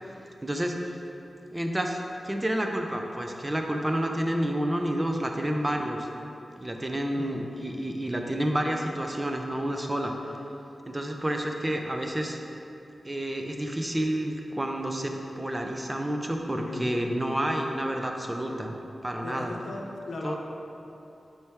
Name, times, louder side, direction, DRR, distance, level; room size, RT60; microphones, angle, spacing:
voice 1, 0.4-1.0 1.5-2.0 2.2-6.1 6.6-10.3 10.9-12.4 13.0-18.7 19.0-19.6 20.2-20.4, right 1 dB, 15° right, 2 dB, 0.5 m, -29 dB
voice 2, 7.2-7.5 16.6-16.9 19.2-20.4, left 2 dB, 85° left, 0 dB, 0.7 m, -37 dB
8.6 x 4.5 x 3.5 m, 2.8 s
wide cardioid pair, 130°, 0 cm